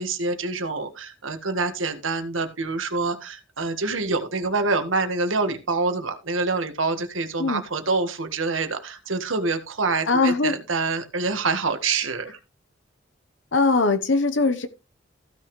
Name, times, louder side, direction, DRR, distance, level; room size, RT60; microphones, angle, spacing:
voice 1, 0.0-12.4, right 3 dB, 90° right, 1.7 m, -26 dB
voice 2, 10.1-10.5 13.5-14.7, left 3 dB, 70° left, 1.0 m, -21 dB
15.5 x 6.1 x 3.2 m
head